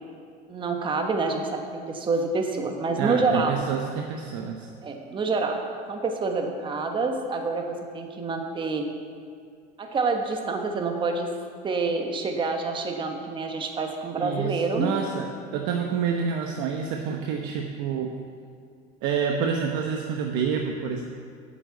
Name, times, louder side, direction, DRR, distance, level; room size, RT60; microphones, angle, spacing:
voice 1, 0.5-3.6 4.8-5.6 5.9-8.9 9.8-11.3 11.6-14.9, right 3 dB, 25° right, 3 dB, 1.2 m, -27 dB
voice 2, 3.0-4.7 14.2-18.1 19.0-21.0, right 6 dB, 65° right, 2 dB, 1.0 m, -28 dB
8.4 x 7.7 x 8.2 m, 2.2 s
supercardioid pair, 115°, 20 cm